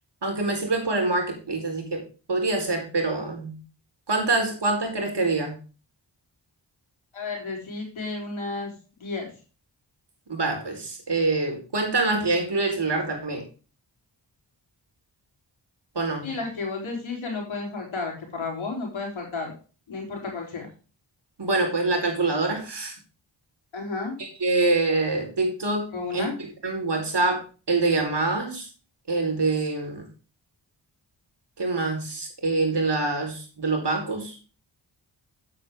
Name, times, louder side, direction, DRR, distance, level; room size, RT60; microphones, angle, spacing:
voice 1, 0.2-3.6 4.1-5.5 10.3-13.4 15.9-16.2 21.4-22.9 24.2-26.3 26.6-28.7 29.1-30.1 31.6-34.4, right 3 dB, 60° right, 2 dB, 4.2 m, -25 dB
voice 2, 7.1-8.7 9.0-9.3 16.2-19.5 19.9-20.7 23.7-24.2 25.9-26.3, left 3 dB, 90° left, 0 dB, 3.8 m, -32 dB
8.6 x 8.4 x 3.7 m, 0.35 s
cardioid pair, 40°, 46 cm